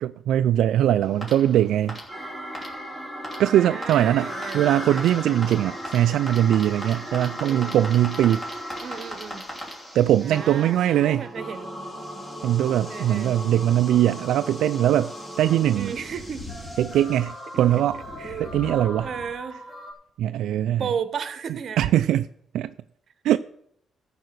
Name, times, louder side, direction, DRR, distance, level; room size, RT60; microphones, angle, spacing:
voice 1, 0.0-2.0 3.4-8.4 9.9-11.2 12.4-15.9 16.8-18.0 18.4-19.1 20.2-20.8 21.8-22.3 22.5-22.7 23.2-23.4, right 11 dB, 80° right, 0.3 m, -21 dB
sound 1, 1.0-19.9, equal, 20° left, 2.8 m, -36 dB
voice 2, 3.4-5.4 7.4-7.8 8.8-9.5 10.2-11.7 12.9-13.4 15.7-16.5 18.2-18.6 19.0-19.6 20.8-21.8, right 7 dB, 50° right, 0.9 m, -34 dB
14.0 x 4.9 x 6.6 m
cardioid pair, 130°, 0 cm